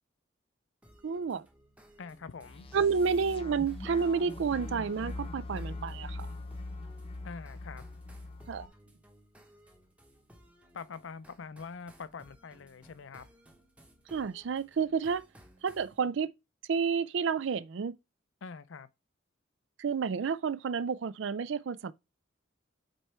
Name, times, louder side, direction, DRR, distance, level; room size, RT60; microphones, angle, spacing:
sound 1, 0.8-16.0, equal, 5° right, 0.9 m, -60 dB
voice 1, 1.0-1.5 2.7-6.3 8.5-8.7 14.1-15.2 15.6-16.3 16.7-17.9 19.8-21.9, right 6 dB, 65° right, 0.4 m, -30 dB
voice 2, 2.0-2.7 7.2-7.9 10.7-13.3 18.4-18.9, left 5 dB, 75° left, 0.5 m, -44 dB
sound 2, 2.4-8.7, left 2 dB, 30° left, 0.7 m, -41 dB
5.3 x 4.4 x 4.3 m
head